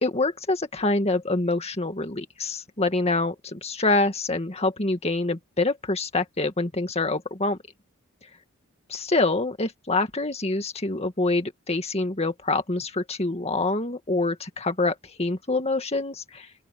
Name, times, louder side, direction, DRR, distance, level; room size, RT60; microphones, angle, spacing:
voice 1, 0.0-7.6 8.9-16.5, left 2 dB, 30° left, 2.1 m, -26 dB
open air
head